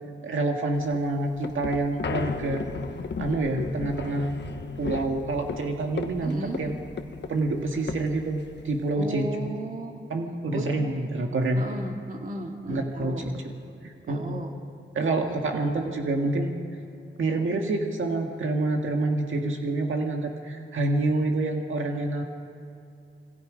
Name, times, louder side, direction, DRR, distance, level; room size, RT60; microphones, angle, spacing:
voice 1, 0.2-2.7 3.2-4.3 4.8-6.8 7.3-9.3 10.1-11.6 12.7-13.4 13.8-14.4 15.0-16.5 17.2-22.2, right 2 dB, 80° right, 2 dB, 1.8 m, -27 dB
sound 1, 0.8-8.9, left 5 dB, 60° left, 1.2 m, -35 dB
voice 2, 6.2-6.6 9.0-9.9 10.5-10.7 11.5-13.2 14.1-14.5 15.1-15.5, right 1 dB, 40° right, 2 dB, 2.2 m, -35 dB
27.0 x 23.5 x 5.2 m, 2.6 s
wide cardioid pair, 150°, 20 cm